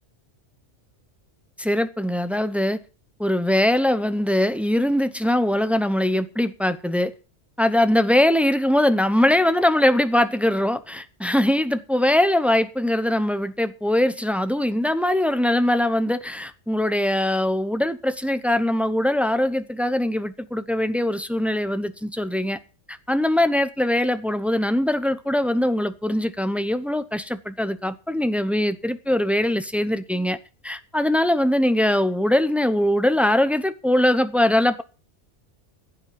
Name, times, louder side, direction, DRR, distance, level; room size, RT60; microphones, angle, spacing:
voice 1, 1.6-2.8 3.2-7.1 7.6-22.6 22.9-30.4 30.6-34.8, left 1 dB, ahead, 0.6 m, -22 dB
15.5 x 8.8 x 5.8 m
omnidirectional pair, 1.3 m